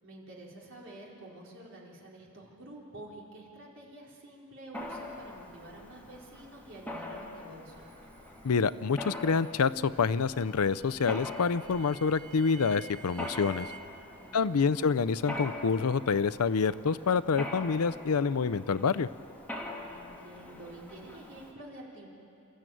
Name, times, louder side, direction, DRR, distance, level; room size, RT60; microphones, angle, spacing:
voice 1, 0.0-7.9 14.2-14.8 19.8-22.1, right 1 dB, 60° right, -3 dB, 4.1 m, -48 dB
Mechanisms, 4.7-21.5, left 2 dB, 10° left, 2.1 m, -44 dB
sound 1, 7.7-13.8, right 5 dB, 35° right, 1.6 m, -52 dB
voice 2, 8.4-13.7 14.3-19.1, left 5 dB, 85° left, 16 dB, 0.5 m, -27 dB
28.0 x 14.0 x 9.2 m, 2.7 s
head